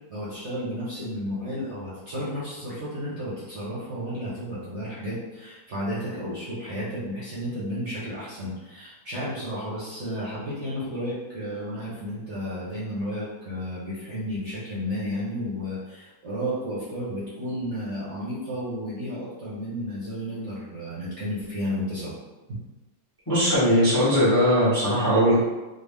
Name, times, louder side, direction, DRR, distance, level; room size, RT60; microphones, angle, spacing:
voice 1, 0.1-22.1, equal, 50° right, -9 dB, 0.8 m, -32 dB
voice 2, 23.3-25.4, equal, 30° left, -9 dB, 0.4 m, -20 dB
3.8 x 2.0 x 3.4 m, 1.1 s
omnidirectional pair, 2.2 m